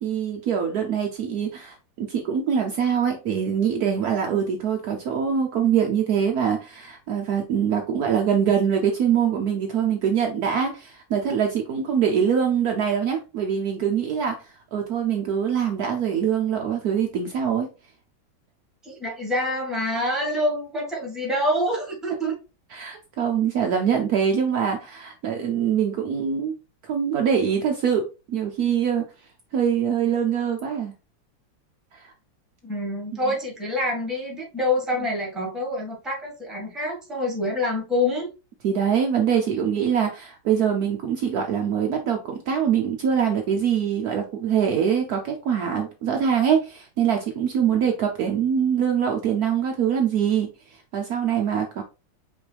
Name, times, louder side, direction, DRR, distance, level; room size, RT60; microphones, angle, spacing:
voice 1, 0.0-17.7 22.7-26.5 26.8-29.0 29.5-30.9 31.9-32.1 38.6-51.8, right 8 dB, 85° right, 3 dB, 0.8 m, -24 dB
voice 2, 18.8-22.3 32.6-38.3, left 1 dB, ahead, -1 dB, 1.1 m, -26 dB
5.2 x 3.1 x 3.3 m, 0.31 s
omnidirectional pair, 2.4 m